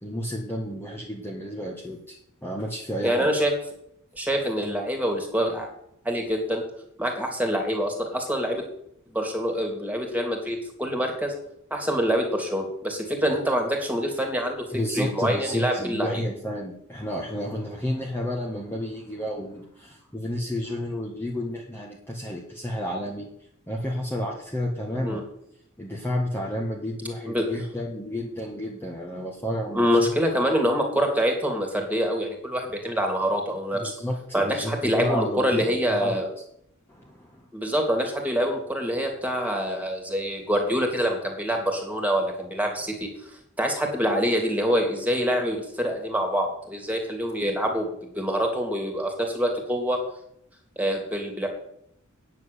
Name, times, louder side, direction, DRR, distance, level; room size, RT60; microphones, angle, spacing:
voice 1, 0.0-3.3 14.7-23.3 23.7-25.2 25.8-29.9 33.7-36.2 36.9-37.4, left 1 dB, 10° left, -2 dB, 1.7 m, -31 dB
voice 2, 3.0-3.5 4.1-5.7 6.0-6.6 7.0-8.6 9.1-11.3 11.7-14.7 14.9-16.2 24.9-25.2 27.3-27.4 29.7-33.9 34.3-36.2 37.5-43.1 43.6-47.9 48.1-50.0 50.8-51.5, equal, 10° right, 2 dB, 2.8 m, -25 dB
9.5 x 7.5 x 8.5 m, 0.73 s
head